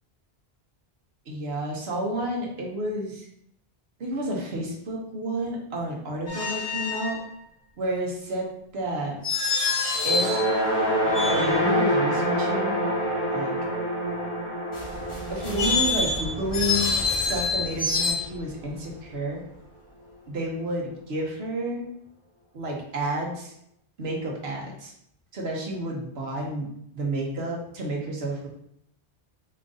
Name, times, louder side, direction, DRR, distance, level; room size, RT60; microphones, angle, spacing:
voice 1, 1.3-3.3 4.0-7.2 7.8-9.2 10.0-10.5 11.3-12.8 13.3-13.5 15.3-16.9 17.2-19.4 20.3-21.8 22.5-23.5 24.0-24.9 25.3-26.7 26.9-28.5, right 1 dB, 80° right, -1 dB, 1.2 m, -30 dB
sound 1, 6.3-7.2 9.2-10.5 11.1-11.8 15.4-18.1, left 4 dB, 75° left, 1.1 m, -26 dB
sound 2, 10.0-18.3, equal, 50° left, 1.0 m, -27 dB
sound 3, 14.7-20.5, left 1 dB, 30° left, 1.1 m, -39 dB
4.4 x 2.5 x 3.8 m, 0.72 s
omnidirectional pair, 1.0 m